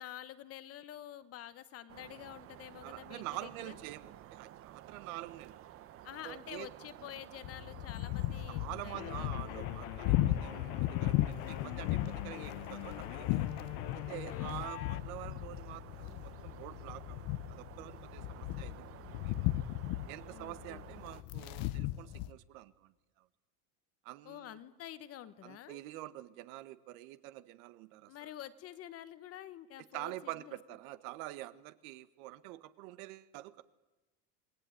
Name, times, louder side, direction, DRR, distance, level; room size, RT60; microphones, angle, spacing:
voice 1, 0.0-3.8 6.0-9.3 14.3-14.7 20.3-20.8 24.2-25.8 28.1-30.6, left 12 dB, 35° left, 14 dB, 1.2 m, -48 dB
sound 1, 1.9-21.2, right 12 dB, 30° right, 0.9 m, -53 dB
voice 2, 2.8-5.6 6.2-6.7 8.5-13.5 13.9-19.4 20.1-23.2 24.0-24.6 25.4-28.3 29.9-33.6, right 16 dB, 70° right, 14 dB, 1.6 m, -46 dB
sound 2, 7.4-22.3, left 15 dB, 50° left, 0.8 m, -36 dB
sound 3, 8.9-15.0, left 16 dB, 75° left, 1.3 m, -44 dB
27.0 x 20.5 x 9.4 m, 1.1 s
cardioid pair, 170°, 43 cm